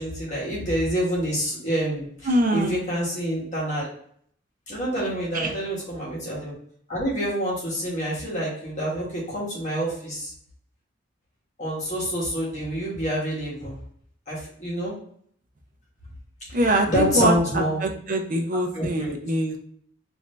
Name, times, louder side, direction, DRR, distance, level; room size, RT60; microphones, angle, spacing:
voice 1, 0.0-3.9 4.7-6.5 6.9-10.3 11.6-13.7 14.3-14.9 16.9-17.8 18.7-19.1, equal, 40° left, -5 dB, 1.5 m, -27 dB
voice 2, 2.2-2.9 5.3-5.5 16.5-19.6, right 1 dB, 45° right, 4 dB, 0.5 m, -24 dB
3.1 x 2.7 x 3.2 m, 0.62 s
head